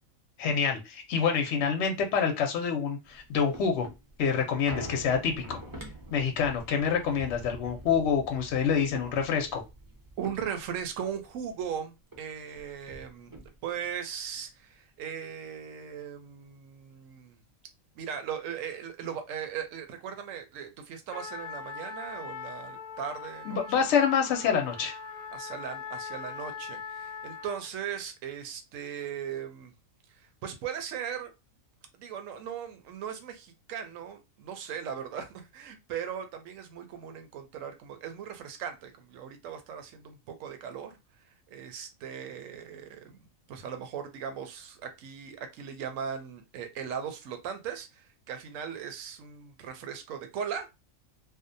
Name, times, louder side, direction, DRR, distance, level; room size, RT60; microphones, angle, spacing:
voice 1, 0.4-3.9 4.2-5.6 6.1-9.6 23.5-25.0, left 6 dB, 65° left, 3 dB, 0.8 m, -27 dB
sound 1, 3.0-11.8 12.1-12.2 12.5-13.9 14.3-14.4, right 1 dB, 25° right, 0.4 m, -45 dB
voice 2, 10.2-17.4 17.9-23.9 25.3-29.7 30.2-31.3 32.0-41.0 41.5-43.2 43.5-50.7, right 8 dB, 75° right, 7 dB, 1.0 m, -38 dB
Trumpet, 21.1-27.7, left 5 dB, 45° left, 0.6 m, -41 dB
2.6 x 2.1 x 2.6 m, 0.24 s
omnidirectional pair, 1.4 m